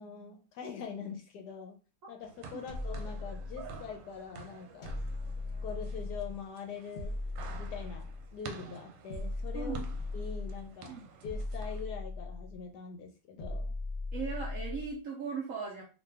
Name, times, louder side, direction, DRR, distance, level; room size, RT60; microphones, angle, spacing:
voice 1, 0.0-1.8 2.1-5.0 5.6-7.2 7.6-9.8 10.1-13.7, left 6 dB, 70° left, 4 dB, 1.0 m, -43 dB
sound 1, 2.2-11.8, right 4 dB, 90° right, 1.3 m, -50 dB
sound 2, 2.7-4.0 4.8-6.5 7.0-8.4 9.1-10.7 11.2-12.6 13.4-15.0, left 2 dB, 50° left, 0.9 m, -38 dB
voice 2, 9.5-9.9 10.9-11.0 14.1-15.8, right 5 dB, 65° right, -1 dB, 0.8 m, -38 dB
3.1 x 2.6 x 3.3 m, 0.35 s
omnidirectional pair, 2.0 m